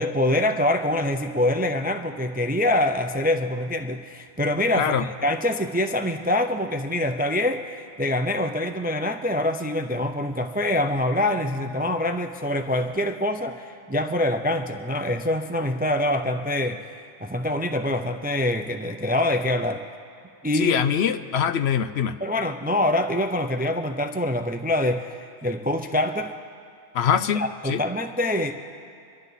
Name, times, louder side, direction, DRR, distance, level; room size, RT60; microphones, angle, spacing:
voice 1, 0.0-16.9 17.2-19.8 20.4-20.8 22.2-26.3 27.3-28.5, left 1 dB, 15° right, 6 dB, 0.3 m, -25 dB
voice 2, 20.5-22.2 26.9-27.8, left 8 dB, 70° left, 11 dB, 0.8 m, -23 dB
26.5 x 11.5 x 4.1 m, 2.3 s
omnidirectional pair, 1.2 m